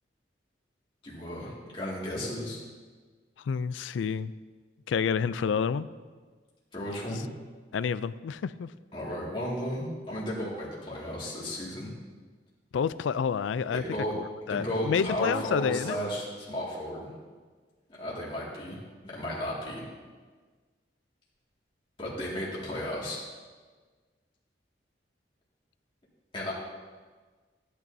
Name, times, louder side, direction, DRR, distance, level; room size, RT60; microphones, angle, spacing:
voice 1, 1.0-2.6 6.7-7.2 8.9-11.9 13.7-14.1 14.5-17.1 18.0-18.8 19.1-19.8 22.0-23.2 26.3-26.5, equal, 25° left, -7 dB, 2.1 m, -34 dB
voice 2, 3.4-4.3 4.9-5.9 7.1-7.2 7.7-8.7 12.7-13.8 14.1-16.0, left 6 dB, 85° left, 16 dB, 0.3 m, -29 dB
15.0 x 9.2 x 2.7 m, 1.4 s
head